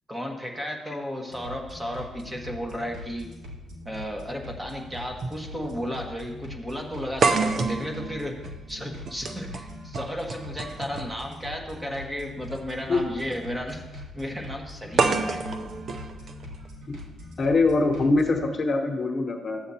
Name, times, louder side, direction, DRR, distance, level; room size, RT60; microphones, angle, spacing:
voice 1, 0.1-3.3 3.8-15.4, equal, 15° right, 1 dB, 1.4 m, -34 dB
sound 1, 1.3-18.4, left 1 dB, 85° right, 2.0 m, -42 dB
sound 2, 5.2-5.4 5.7-5.8 7.2-11.2 12.4-12.6 15.0-17.0, right 4 dB, 50° right, 0.7 m, -28 dB
voice 2, 17.4-19.6, left 3 dB, 40° left, 4 dB, 1.0 m, -23 dB
12.0 x 7.8 x 2.8 m, 1.1 s
cardioid pair, 90°, 0 cm